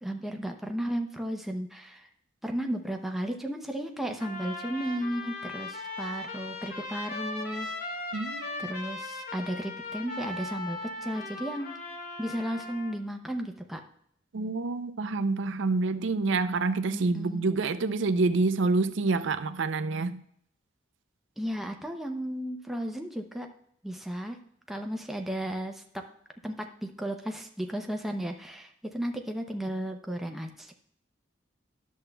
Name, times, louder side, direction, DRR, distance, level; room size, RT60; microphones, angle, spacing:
voice 1, 0.0-2.1 2.4-7.7 8.6-11.8 12.2-13.8 16.9-17.5 21.4-23.5 23.8-24.4 24.7-25.8 26.4-30.7, equal, ahead, 0.6 m, -34 dB
Trumpet, 4.2-13.0, left 2 dB, 45° left, 1.2 m, -38 dB
voice 2, 8.1-8.7 14.3-20.2, right 3 dB, 70° right, 0.5 m, -27 dB
11.0 x 7.2 x 2.3 m
head